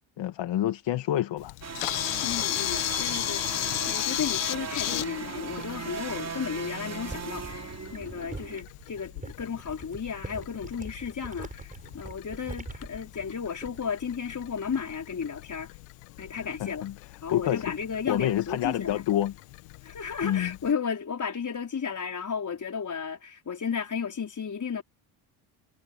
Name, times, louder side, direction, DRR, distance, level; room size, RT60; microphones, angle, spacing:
voice 1, 0.2-1.5 16.6-16.9 17.3-17.6 18.1-19.3 20.2-20.6, left 12 dB, 60° left, 2.1 m, -27 dB
Camera, 1.4-20.7, left 21 dB, 85° left, 1.8 m, -36 dB
sound 1, 1.6-8.6, right 5 dB, 35° right, 3.3 m, -37 dB
voice 2, 2.2-15.7 16.2-16.9 17.2-19.1 19.8-24.8, left 6 dB, 40° left, 5.1 m, -34 dB
sound 2, 7.0-14.0 14.3-14.7, right 2 dB, 15° right, 5.3 m, -43 dB
supercardioid pair, 70°, 48 cm